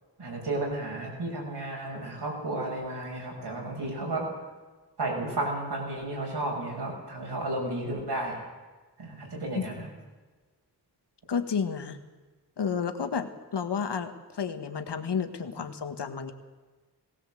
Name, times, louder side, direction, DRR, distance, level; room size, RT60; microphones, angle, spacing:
voice 1, 0.2-4.3 5.0-8.4 9.0-9.9, right 2 dB, 75° right, 0 dB, 6.9 m, -33 dB
voice 2, 11.3-12.0 12.6-16.3, left 6 dB, 80° left, 8 dB, 1.7 m, -31 dB
18.5 x 18.0 x 7.8 m, 1.3 s
cardioid pair, 55°, 40 cm